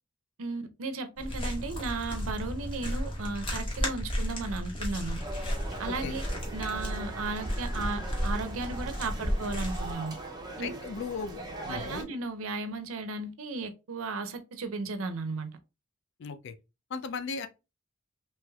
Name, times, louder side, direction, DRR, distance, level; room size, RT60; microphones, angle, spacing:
voice 1, 0.4-5.2 5.8-6.2 6.5-10.1 10.6-10.7 11.7-15.5, right 3 dB, 75° right, 0.6 m, -35 dB
sound 1, 1.2-9.9, equal, 25° left, 0.9 m, -33 dB
sound 2, 5.2-12.0, right 2 dB, 20° right, 0.5 m, -41 dB
voice 2, 5.9-6.2 10.6-12.1 16.2-16.5 16.9-17.5, left 5 dB, 60° left, 0.4 m, -37 dB
3.1 x 3.0 x 2.3 m
head